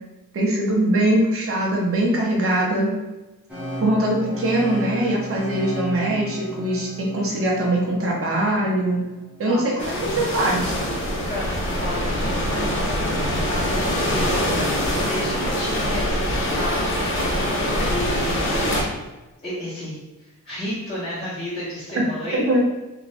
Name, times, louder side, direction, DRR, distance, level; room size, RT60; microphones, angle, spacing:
voice 1, 0.3-2.9 3.8-9.0 9.4-10.7 22.0-22.1 22.3-22.6, right 1 dB, 40° right, -2 dB, 0.8 m, -22 dB
sound 1, 3.5-9.4, equal, 5° right, 0.9 m, -34 dB
voice 2, 9.4-10.2 11.2-18.6 19.4-22.5, equal, 15° left, -14 dB, 1.2 m, -33 dB
sound 2, 9.8-18.8, equal, 40° left, 0.7 m, -24 dB
2.6 x 2.4 x 3.3 m, 1.1 s
cardioid pair, 115°, 33 cm